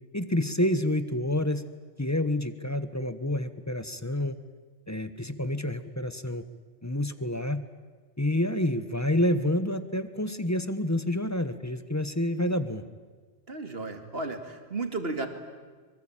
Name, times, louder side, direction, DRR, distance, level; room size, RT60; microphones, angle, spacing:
voice 1, 0.1-1.6 2.0-4.4 4.9-6.4 6.8-7.6 8.2-12.8, left 1 dB, 15° left, 12 dB, 1.1 m, -28 dB
voice 2, 13.5-15.3, right 3 dB, 60° right, 7 dB, 2.6 m, -33 dB
24.5 x 23.0 x 8.9 m, 1.5 s
omnidirectional pair, 1.2 m